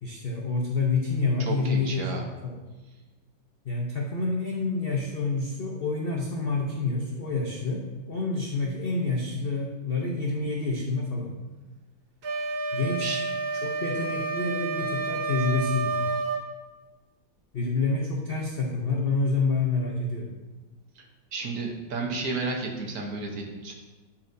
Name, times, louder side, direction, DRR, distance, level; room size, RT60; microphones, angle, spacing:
voice 1, 0.0-2.0 2.4-2.6 3.6-11.3 12.7-13.2 13.6-16.1 17.5-20.3, left 3 dB, 70° left, -2 dB, 0.5 m, -28 dB
voice 2, 1.4-2.2 13.0-13.2 21.0-21.1 21.3-23.7, right 3 dB, 60° right, 0 dB, 1.3 m, -32 dB
sound 1, 12.2-16.5, right 3 dB, 80° right, 0.5 m, -30 dB
12.0 x 4.4 x 2.6 m, 1.2 s
omnidirectional pair, 2.0 m